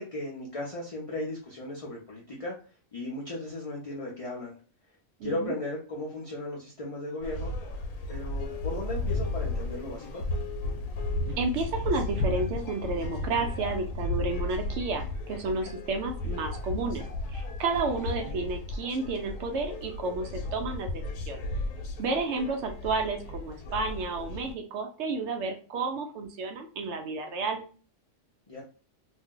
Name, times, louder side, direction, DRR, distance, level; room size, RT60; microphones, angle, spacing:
voice 1, 0.0-2.5 2.9-4.5 5.2-7.5 8.1-10.2 15.4-15.7 18.2-18.5 28.5-28.6, left 2 dB, 40° left, -4 dB, 0.5 m, -36 dB
voice 2, 5.2-5.5 11.3-17.0 17.3-21.4 22.0-27.6, right 3 dB, 70° right, 4 dB, 0.8 m, -31 dB
sound 1, 7.2-24.5, left 2 dB, 85° left, 1.0 m, -34 dB
2.6 x 2.1 x 3.6 m, 0.38 s
omnidirectional pair, 1.3 m